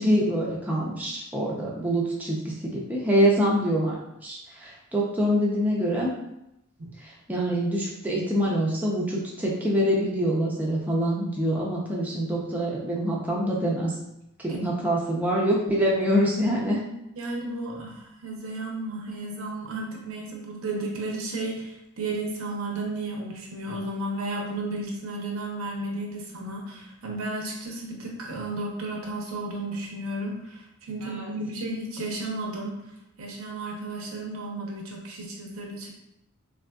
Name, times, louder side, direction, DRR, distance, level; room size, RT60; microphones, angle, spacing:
voice 1, 0.0-2.4 2.6-6.1 7.0-13.9 14.4-16.8 31.0-31.3, equal, 10° right, -4 dB, 0.4 m, -25 dB
voice 2, 17.2-32.7 33.2-35.9, right 2 dB, 85° right, 0 dB, 0.7 m, -33 dB
3.5 x 2.5 x 2.2 m, 0.84 s
head